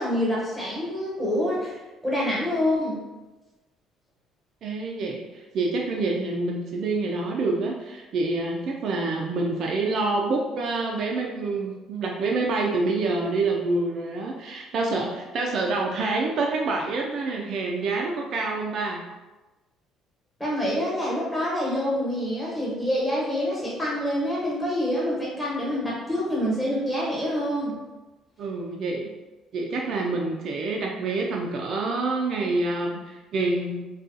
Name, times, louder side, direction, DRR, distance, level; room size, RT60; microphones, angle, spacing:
voice 1, 0.0-1.8 2.0-3.0 20.4-27.7, equal, 5° left, -6 dB, 1.1 m, -26 dB
voice 2, 4.6-19.0 28.4-29.1 29.5-33.8, right 3 dB, 60° right, 0 dB, 0.3 m, -27 dB
2.4 x 2.3 x 2.5 m, 1.1 s
hypercardioid pair, 65°, 0 cm